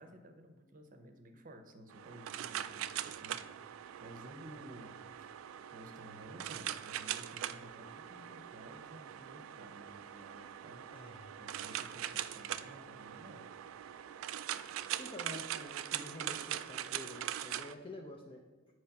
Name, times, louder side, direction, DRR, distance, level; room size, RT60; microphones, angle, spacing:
voice 1, 0.0-3.7 4.0-5.3 5.7-11.0 11.4-13.5, right 1 dB, 45° right, 6 dB, 0.7 m, -54 dB
sound 1, 1.9-17.7, right 11 dB, 80° right, 0.3 m, -42 dB
voice 2, 10.9-11.4 15.0-18.4, left 2 dB, 25° left, 0 dB, 0.5 m, -49 dB
8.0 x 3.2 x 5.7 m, 1.3 s
head